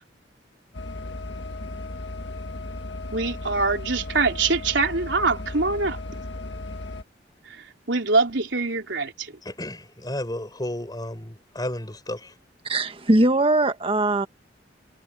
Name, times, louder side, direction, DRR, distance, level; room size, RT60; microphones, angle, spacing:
sound 1, 0.7-7.0, left 2 dB, 80° left, 1.8 m, -35 dB
voice 1, 3.1-6.0 7.9-9.3, right 3 dB, 85° right, 3.7 m, -23 dB
voice 2, 9.4-12.4, left 1 dB, 20° left, 4.4 m, -33 dB
voice 3, 12.6-14.3, right 2 dB, 30° right, 1.5 m, -20 dB
head